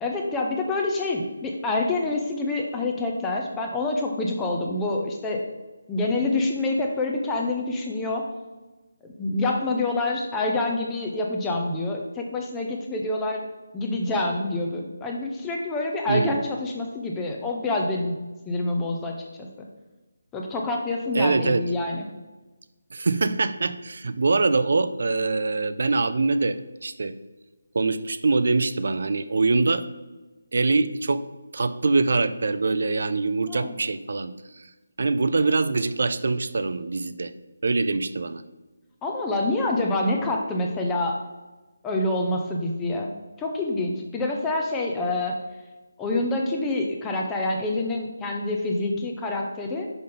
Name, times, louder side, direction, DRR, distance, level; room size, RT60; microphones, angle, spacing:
voice 1, 0.0-5.4 5.9-8.2 9.2-13.4 13.7-18.2 18.5-19.2 19.6-19.7 20.3-22.1 33.5-33.7 39.0-41.2 41.8-43.1 43.4-45.4 46.0-49.9, left 2 dB, 10° left, 1 dB, 0.5 m, -27 dB
voice 2, 16.1-16.4 21.1-21.6 22.9-27.2 27.7-29.8 30.5-31.2 31.5-34.7 35.0-37.3 37.6-38.4, right 3 dB, 60° right, 12 dB, 0.4 m, -24 dB
5.8 x 5.1 x 3.7 m, 1.2 s
figure-of-eight pair, 170°, 0 cm